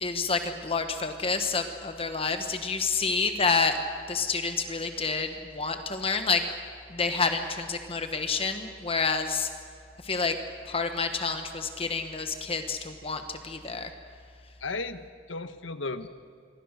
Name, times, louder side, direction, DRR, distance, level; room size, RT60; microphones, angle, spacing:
voice 1, 0.0-3.8 4.1-6.4 6.9-9.5 10.0-10.3 10.7-13.9, left 4 dB, 30° left, 7 dB, 1.3 m, -28 dB
voice 2, 14.6-16.1, left 3 dB, 70° left, 11 dB, 1.3 m, -35 dB
26.5 x 23.0 x 6.6 m, 2.3 s
head